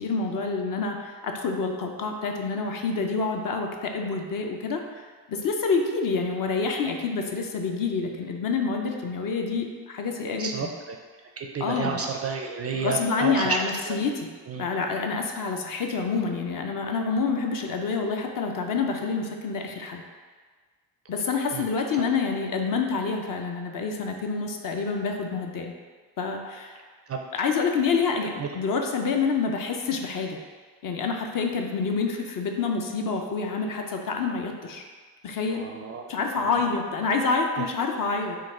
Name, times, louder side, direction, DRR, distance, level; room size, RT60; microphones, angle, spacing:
voice 1, 0.0-10.7 11.6-12.0 12.7-14.3 14.6-20.0 21.1-25.7 26.2-26.8 27.3-30.4 30.8-34.9 35.2-35.7 36.1-38.4, left 4 dB, 45° left, 3 dB, 0.6 m, -27 dB
voice 2, 10.4-11.0 11.4-13.6 13.9-14.0 14.5-14.6 21.5-21.7 22.0-22.1 27.1-27.2 28.4-28.5 35.5-36.1 36.4-36.5 37.6-37.7, right 5 dB, 35° right, 2 dB, 0.4 m, -31 dB
3.8 x 2.4 x 4.2 m, 1.5 s
supercardioid pair, 65°, 46 cm